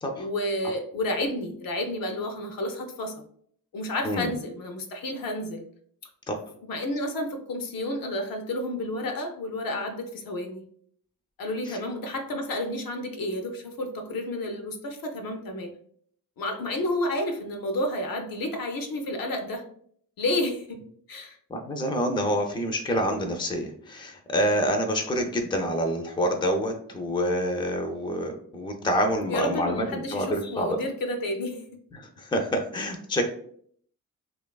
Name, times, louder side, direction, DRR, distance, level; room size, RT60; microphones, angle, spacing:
voice 1, 0.2-3.2 3.7-5.6 6.6-10.7 11.4-15.7 16.4-19.6 20.2-21.4 29.3-31.6, left 1 dB, 70° left, 5 dB, 0.5 m, -31 dB
voice 2, 21.5-30.8 31.9-33.3, equal, 15° left, 4 dB, 0.4 m, -27 dB
2.9 x 2.3 x 2.2 m, 0.62 s
cardioid pair, 55°, 35 cm